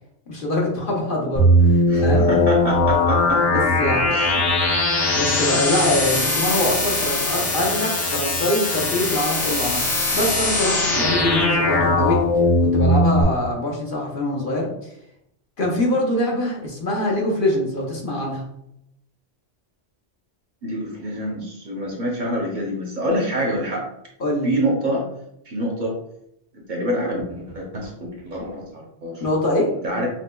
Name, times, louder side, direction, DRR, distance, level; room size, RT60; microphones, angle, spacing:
voice 1, 0.3-2.2 3.3-4.0 4.4-4.5 5.1-9.8 10.1-12.2 12.6-14.9 15.6-18.5 24.2-24.5 29.2-29.7, left 1 dB, 50° left, -2 dB, 1.0 m, -24 dB
sound 1, 1.4-13.2, left 1 dB, 85° left, 1.2 m, -20 dB
voice 2, 1.9-3.4 4.1-4.3 20.6-23.9 24.4-25.0 25.5-25.9 26.7-29.2 29.8-30.1, equal, 50° right, -1 dB, 0.8 m, -26 dB
5.9 x 2.3 x 2.2 m, 0.77 s
omnidirectional pair, 1.2 m